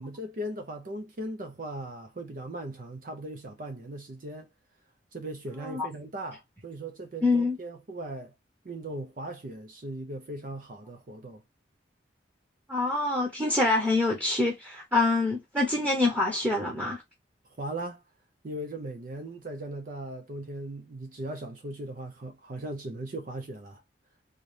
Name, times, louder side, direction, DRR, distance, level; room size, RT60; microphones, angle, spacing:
voice 1, 0.0-4.5 5.1-8.3 8.6-11.4 17.6-18.0 18.4-23.8, right 1 dB, 45° right, 0.5 m, -38 dB
voice 2, 7.2-7.6 12.7-17.0, left 2 dB, 10° right, 0.9 m, -26 dB
3.9 x 2.6 x 3.2 m
head